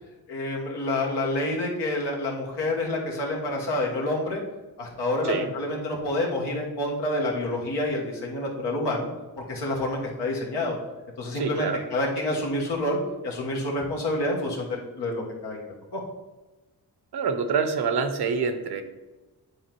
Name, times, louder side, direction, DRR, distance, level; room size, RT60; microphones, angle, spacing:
voice 1, 0.3-4.4 4.8-9.1 9.5-10.8 11.2-13.0 13.2-16.0, left 1 dB, 90° left, -2 dB, 1.4 m, -28 dB
voice 2, 11.3-11.8 17.1-18.8, right 5 dB, 70° right, 8 dB, 0.8 m, -26 dB
9.5 x 3.9 x 3.0 m, 1.2 s
cardioid pair, 65°, 40 cm